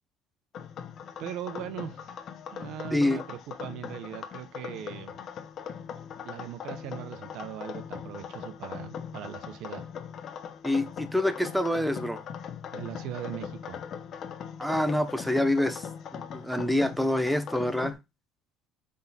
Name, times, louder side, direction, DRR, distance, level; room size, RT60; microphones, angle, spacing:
sound 1, 0.5-17.9, left 7 dB, 45° left, 0.8 m, -40 dB
voice 1, 1.2-2.0 2.5-5.2 6.2-9.8 12.7-13.8, right 11 dB, 65° right, 0.9 m, -39 dB
voice 2, 2.9-3.2 10.6-12.2 14.6-15.9 16.1-18.0, left 1 dB, ahead, 0.6 m, -26 dB
8.0 x 3.8 x 4.1 m
cardioid pair, 130°, 0 cm